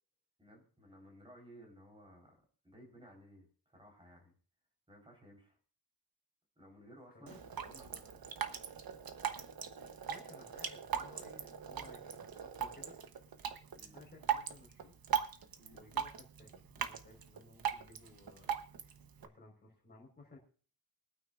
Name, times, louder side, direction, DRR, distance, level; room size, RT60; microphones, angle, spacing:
voice 1, 0.4-4.3 4.9-5.6 6.6-8.2 13.7-14.0 15.6-15.9, equal, 15° right, 1 dB, 4.2 m, -58 dB
Drip, 7.3-19.3, right 8 dB, 65° right, 1.1 m, -40 dB
voice 2, 10.1-13.0 13.9-14.9 15.7-18.5 19.2-20.4, left 2 dB, 25° left, -1 dB, 4.5 m, -58 dB
24.0 x 9.2 x 2.5 m, 0.42 s
wide cardioid pair, 175°, 38 cm